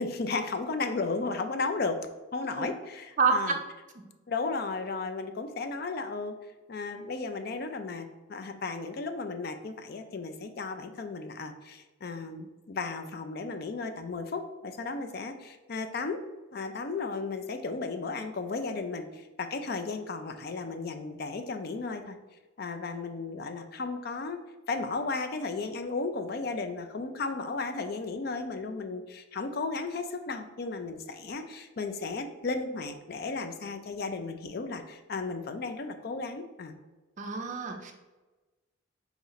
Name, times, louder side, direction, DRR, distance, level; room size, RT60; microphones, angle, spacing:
voice 1, 0.0-2.0 2.3-3.6 4.3-6.4 6.7-16.2 16.5-22.2 22.6-24.4 24.7-36.8, left 3 dB, 50° left, 7 dB, 0.4 m, -34 dB
voice 2, 37.2-37.9, right 5 dB, 35° right, 3 dB, 0.5 m, -27 dB
4.1 x 3.0 x 3.9 m, 1.2 s
head